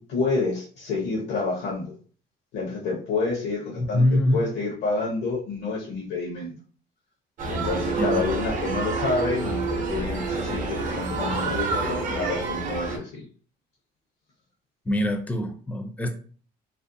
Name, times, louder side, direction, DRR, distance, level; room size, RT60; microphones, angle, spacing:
voice 1, 0.0-2.0 2.5-4.0 4.3-6.5 7.5-13.2, left 3 dB, 75° left, -4 dB, 0.7 m, -28 dB
voice 2, 3.8-4.4 8.0-8.2 14.9-16.1, left 1 dB, 10° left, 6 dB, 0.4 m, -24 dB
sound 1, 7.4-13.0, right 3 dB, 50° right, 0.6 m, -28 dB
2.5 x 2.1 x 2.5 m, 0.43 s
cardioid pair, 110°, 17 cm